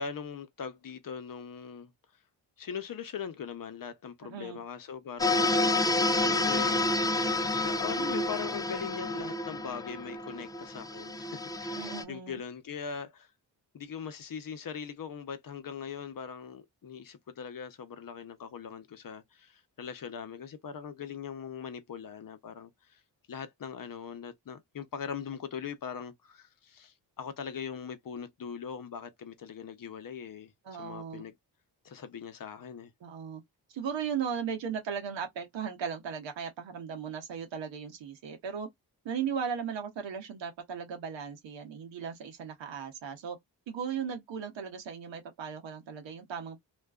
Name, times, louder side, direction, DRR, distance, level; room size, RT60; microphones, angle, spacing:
voice 1, 0.0-1.9 2.6-5.6 6.2-6.9 7.6-13.3 13.7-23.0 23.3-31.3 31.8-32.9, left 7 dB, 50° left, 0.7 m, -41 dB
voice 2, 4.2-4.6 11.7-12.4 30.6-31.3 33.0-33.4 33.7-38.7 39.0-43.4 43.7-46.6, right 7 dB, 75° right, 0.9 m, -37 dB
sound 1, 5.2-12.0, left 2 dB, 10° left, 0.3 m, -29 dB
2.4 x 2.2 x 2.3 m
supercardioid pair, 45°, 45 cm